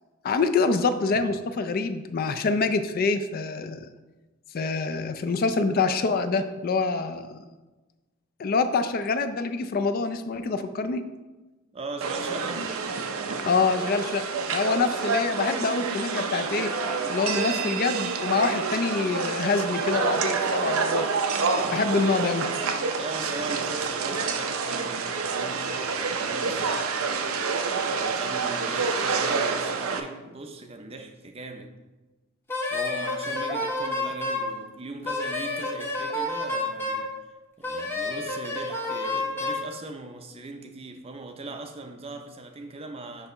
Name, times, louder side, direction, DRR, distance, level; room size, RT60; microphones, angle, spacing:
voice 1, 0.2-3.9 4.5-7.4 8.4-11.0 13.4-16.7 17.1-21.1 21.7-22.5, left 4 dB, 45° left, 0.4 m, -26 dB
voice 2, 11.7-12.8 23.0-26.9 27.9-31.8 32.7-37.1 37.6-43.3, right 2 dB, 30° right, 0.5 m, -39 dB
sound 1, 12.0-30.0, right 4 dB, 85° right, 0.6 m, -28 dB
Wind instrument woodwind instrument, 32.5-34.5 35.0-37.1 37.6-39.6, left 2 dB, 10° left, 0.7 m, -29 dB
6.6 x 2.9 x 5.4 m
head